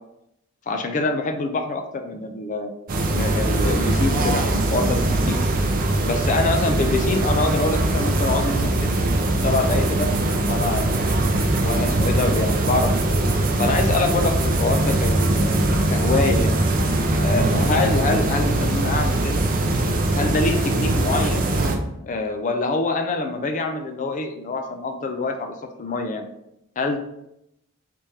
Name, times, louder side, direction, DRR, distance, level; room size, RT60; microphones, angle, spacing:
voice 1, 0.7-2.7 3.1-5.4 6.0-8.9 9.4-10.1 10.5-11.0 11.6-13.2 13.6-16.6 17.2-19.4 20.1-21.5 22.0-26.3 26.8-27.0, left 3 dB, 35° left, 6 dB, 0.3 m, -25 dB
sound 1, 2.9-21.8, right 2 dB, 40° right, 0.4 m, -21 dB
3.4 x 3.2 x 2.8 m, 0.82 s
head